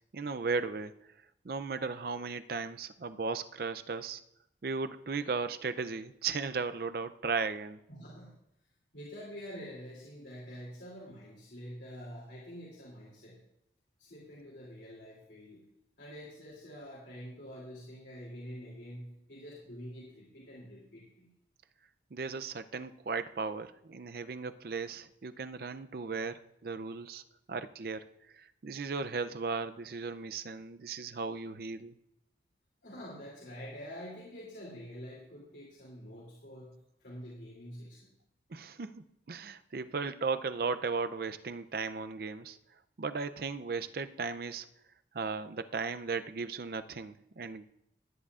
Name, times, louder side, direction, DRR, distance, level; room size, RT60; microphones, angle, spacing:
voice 1, 0.1-0.9 1.4-4.2 4.6-7.8 22.1-27.2 27.5-28.0 28.3-31.9 38.5-42.6 43.0-44.7 45.1-47.7, right 4 dB, 55° right, 11 dB, 0.5 m, -36 dB
voice 2, 7.9-8.3 8.9-13.4 14.0-15.6 16.0-21.3 32.8-38.1, equal, 80° left, -6 dB, 2.9 m, -47 dB
19.0 x 10.0 x 2.4 m, 0.79 s
head